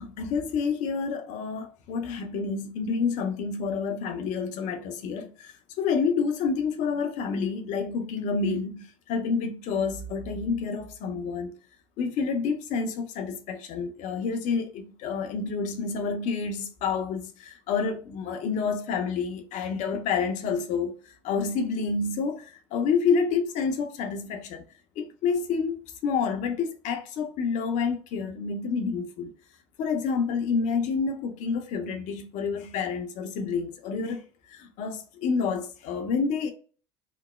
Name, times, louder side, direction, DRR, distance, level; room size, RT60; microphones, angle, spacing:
voice 1, 0.0-11.5 12.0-24.6 25.0-29.3 29.8-36.5, left 5 dB, 55° left, 0.6 m, -29 dB
3.0 x 2.0 x 2.2 m
hypercardioid pair, 70°, 15 cm